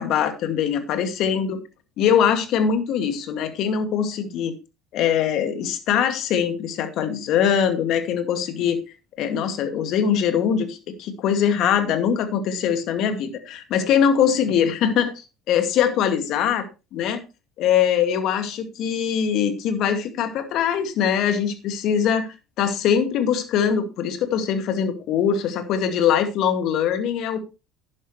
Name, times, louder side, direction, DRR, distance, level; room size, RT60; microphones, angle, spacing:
voice 1, 0.0-1.6 2.0-4.5 4.9-8.8 9.2-16.6 16.9-17.2 17.6-27.4, left 8 dB, 60° left, 7 dB, 2.2 m, -22 dB
11.0 x 9.8 x 3.2 m, 0.29 s
hypercardioid pair, 65°, 0 cm